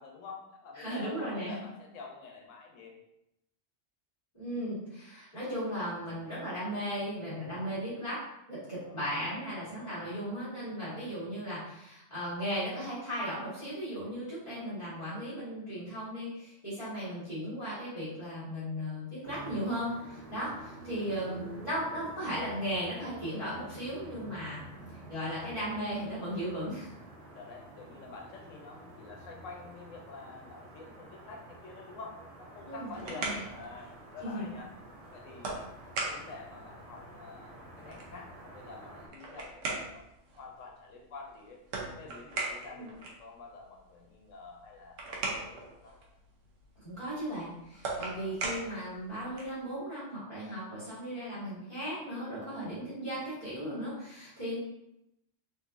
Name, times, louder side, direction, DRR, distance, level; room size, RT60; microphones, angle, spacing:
voice 1, 0.0-3.0 8.8-10.0 20.5-20.7 24.8-25.1 27.3-34.7 35.1-35.7 36.0-40.0 40.4-41.6 42.0-45.9 47.9-48.3, left 4 dB, 85° left, 0 dB, 1.0 m, -48 dB
voice 2, 0.7-1.6 4.3-8.2 8.5-24.6 25.1-26.9 32.6-33.4 34.2-34.5 42.7-42.9 46.8-54.6, equal, 25° left, -14 dB, 1.6 m, -36 dB
sound 1, 19.2-39.1, right 1 dB, 60° right, 1.0 m, -50 dB
sound 2, 32.6-49.6, right 3 dB, 90° right, 1.1 m, -41 dB
3.8 x 2.7 x 2.4 m, 0.85 s
omnidirectional pair, 1.3 m